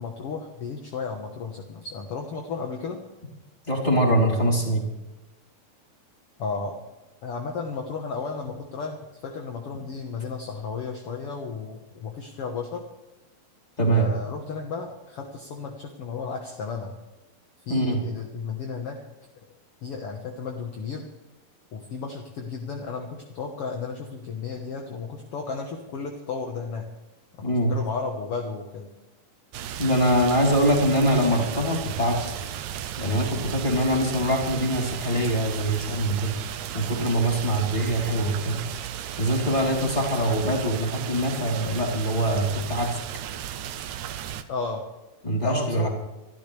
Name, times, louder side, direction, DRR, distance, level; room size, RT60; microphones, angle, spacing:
voice 1, 0.0-3.0 6.4-6.8 7.2-12.8 13.9-16.9 17.7-19.0 19.8-21.1 21.7-26.8 27.4-28.9 30.5-30.6 44.5-44.8 45.4-45.9, left 4 dB, 55° left, 2 dB, 1.7 m, -33 dB
voice 2, 3.7-4.9 13.8-14.1 17.7-18.0 27.4-27.7 29.8-32.3 33.0-36.3 36.7-38.6 39.2-43.0 45.2-45.9, right 1 dB, 10° left, -2 dB, 3.5 m, -23 dB
sound 1, 29.5-44.4, right 10 dB, 80° right, 1.7 m, -35 dB
26.0 x 13.0 x 3.4 m, 1.0 s
omnidirectional pair, 4.2 m